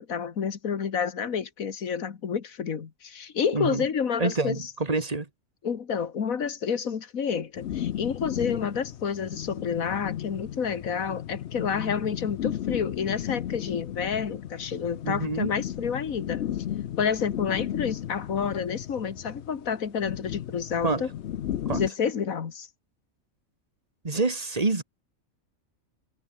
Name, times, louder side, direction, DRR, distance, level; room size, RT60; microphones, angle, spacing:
voice 1, 0.0-4.5 5.6-16.4 17.0-21.1 21.7-22.7, left 7 dB, 75° left, 1.9 m, -29 dB
voice 2, 3.5-3.8 4.2-5.3 15.1-15.5 20.8-21.1 21.7-21.8 24.0-24.8, right 3 dB, 25° right, 1.9 m, -27 dB
sound 1, 7.6-21.9, left 11 dB, 60° left, 0.9 m, -34 dB
omnidirectional pair, 1.5 m